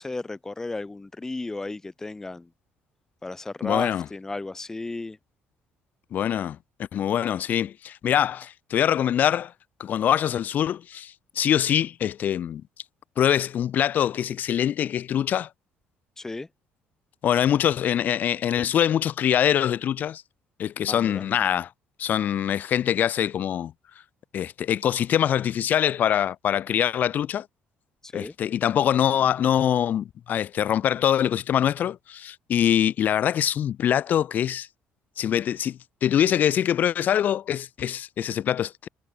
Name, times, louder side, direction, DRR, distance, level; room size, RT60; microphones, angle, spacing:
voice 1, 0.0-2.5 3.2-5.2 16.2-16.5 20.9-21.2 28.0-28.3, left 2 dB, 15° left, 1.0 m, -34 dB
voice 2, 3.6-4.0 6.1-6.6 6.9-9.5 9.8-12.6 13.2-15.5 17.2-20.2 20.6-21.7 22.0-23.7 24.3-27.5 28.1-34.7 35.2-38.9, left 10 dB, 50° left, 0.8 m, -24 dB
cardioid pair, 130°, 4 cm